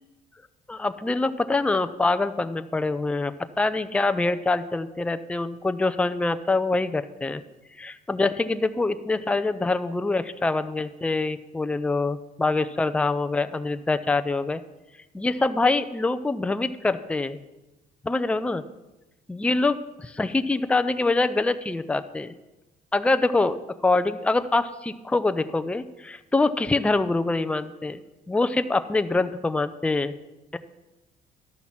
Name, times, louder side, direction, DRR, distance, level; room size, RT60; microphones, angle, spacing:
voice 1, 0.7-7.4 7.8-14.6 15.1-17.4 18.0-18.6 19.3-22.3 22.9-23.6 23.8-28.0 28.3-30.1 30.5-30.6, left 3 dB, 5° left, 10 dB, 0.5 m, -25 dB
12.0 x 6.0 x 7.3 m, 1.0 s
cardioid pair, 110°, 17 cm